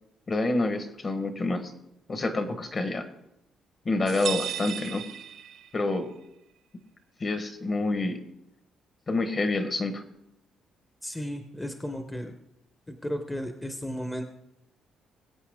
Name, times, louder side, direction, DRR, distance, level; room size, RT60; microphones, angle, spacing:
voice 1, 0.3-1.7 2.1-3.1 3.8-5.0 5.7-6.1 7.2-8.2 9.1-10.0, left 2 dB, 30° left, 9 dB, 1.2 m, -28 dB
sound 1, 4.1-6.0, right 9 dB, 65° right, 0.7 m, -35 dB
voice 2, 11.0-12.3 12.9-14.2, equal, 10° left, 5 dB, 0.9 m, -34 dB
20.5 x 8.3 x 3.6 m, 0.85 s
cardioid pair, 135°, 0 cm